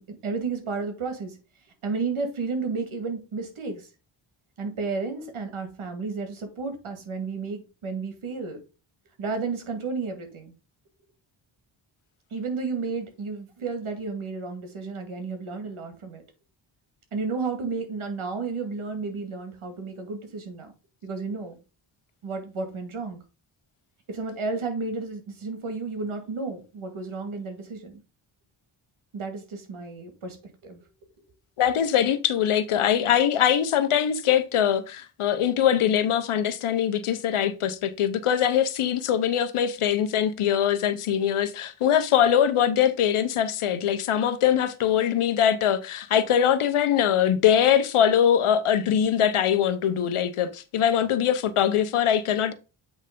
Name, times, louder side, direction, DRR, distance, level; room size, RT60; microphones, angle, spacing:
voice 1, 0.0-1.4 1.8-3.9 4.6-8.6 9.2-10.5 12.3-16.2 17.1-20.7 21.0-21.6 22.2-23.2 24.1-28.0 29.1-30.4 30.6-30.8, right 4 dB, 80° right, 2.2 m, -32 dB
voice 2, 31.6-52.5, left 9 dB, 90° left, 0.9 m, -22 dB
8.2 x 3.3 x 5.2 m
cardioid pair, 80°, 49 cm